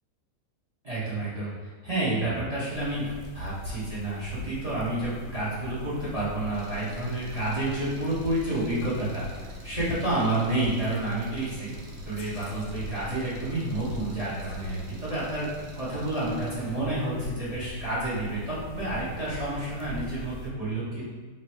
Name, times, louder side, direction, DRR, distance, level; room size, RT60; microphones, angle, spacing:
voice 1, 0.8-9.3 9.6-11.7 12.0-15.5 15.8-21.0, right 2 dB, 25° right, -9 dB, 0.9 m, -30 dB
sound 1, 2.7-20.5, left 2 dB, 70° left, 1.1 m, -42 dB
Engine, 6.5-16.6, left 1 dB, 70° right, 1.3 m, -48 dB
3.2 x 3.0 x 4.6 m, 1.4 s
omnidirectional pair, 2.3 m